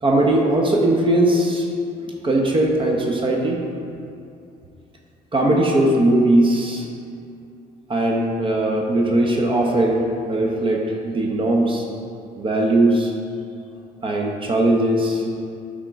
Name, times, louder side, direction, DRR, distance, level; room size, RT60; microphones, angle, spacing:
voice 1, 0.0-1.6 2.2-3.6 5.3-6.8 7.9-11.8 12.4-13.1 14.0-15.4, right 1 dB, 30° right, 0 dB, 0.9 m, -19 dB
8.8 x 3.7 x 4.7 m, 2.5 s
cardioid pair, 110°, 17 cm